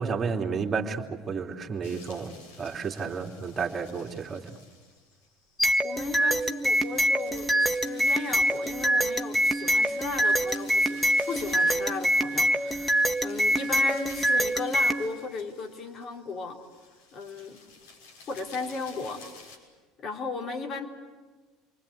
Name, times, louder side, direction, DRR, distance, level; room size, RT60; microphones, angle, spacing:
voice 1, 0.0-4.6, right 5 dB, 30° right, 1 dB, 3.1 m, -32 dB
sound 1, 1.8-19.6, left 4 dB, 70° left, 6.3 m, -52 dB
sound 2, 5.6-15.0, equal, 5° left, 1.7 m, -25 dB
voice 2, 5.8-16.6 17.1-17.6 18.3-19.2 20.0-20.9, left 3 dB, 40° left, 2 dB, 4.0 m, -36 dB
28.0 x 24.0 x 8.4 m, 1.3 s
hypercardioid pair, 70°, 0 cm